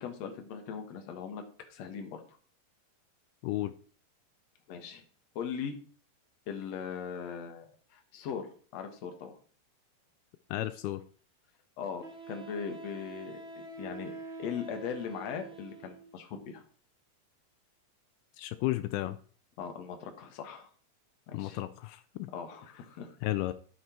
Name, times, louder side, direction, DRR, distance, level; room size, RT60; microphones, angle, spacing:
voice 1, 0.0-1.4 1.7-2.2 4.7-5.0 5.4-5.7 6.5-7.7 7.9-8.5 8.7-9.4 11.8-13.4 13.8-14.1 14.4-16.6 19.6-20.7 21.3-21.6 22.3-23.1, left 7 dB, 55° left, 2.2 m, -39 dB
voice 2, 10.5-11.0 18.4-19.2 21.3-22.3 23.2-23.5, left 16 dB, 85° left, 2.5 m, -33 dB
Wind instrument woodwind instrument, 10.7-10.8 12.0-16.1, right 3 dB, 65° right, 0.6 m, -45 dB
13.0 x 6.1 x 4.4 m
omnidirectional pair, 4.4 m